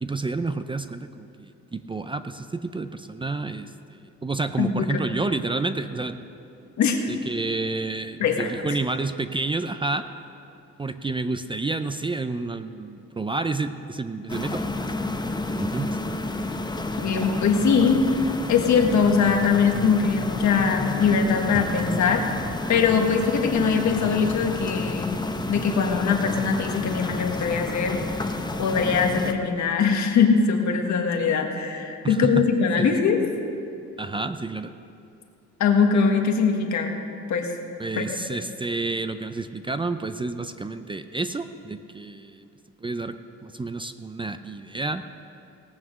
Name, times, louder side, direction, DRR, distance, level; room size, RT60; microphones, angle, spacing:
voice 1, 0.0-6.2 7.1-10.1 10.8-14.9 15.6-16.0 21.5-21.6 32.0-32.5 32.8-33.0 34.0-34.7 37.8-42.4 42.8-45.1, right 3 dB, 15° right, 10 dB, 0.5 m, -30 dB
voice 2, 4.6-5.1 6.8-7.0 8.2-8.8 17.0-22.3 22.7-25.2 25.5-28.0 28.6-33.2 35.6-36.9 37.3-37.5 38.0-38.2, left 5 dB, 70° left, 3 dB, 1.6 m, -22 dB
sound 1, 14.3-29.3, left 2 dB, 15° left, 0.8 m, -30 dB
18.0 x 7.2 x 6.3 m, 2.6 s
cardioid pair, 90°, 30 cm